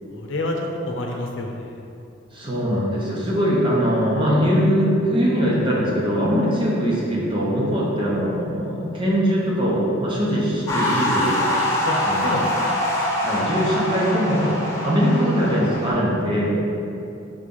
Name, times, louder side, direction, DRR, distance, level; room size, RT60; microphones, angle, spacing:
voice 1, 0.1-1.8 11.8-12.0 12.2-12.5, left 1 dB, 80° left, 1 dB, 0.7 m, -27 dB
voice 2, 2.3-11.5 12.0-12.4 13.2-14.5 14.8-16.6, equal, 25° right, -5 dB, 1.1 m, -21 dB
sound 1, 10.7-15.9, left 1 dB, 15° left, 1.0 m, -24 dB
5.3 x 3.3 x 5.5 m, 2.8 s
head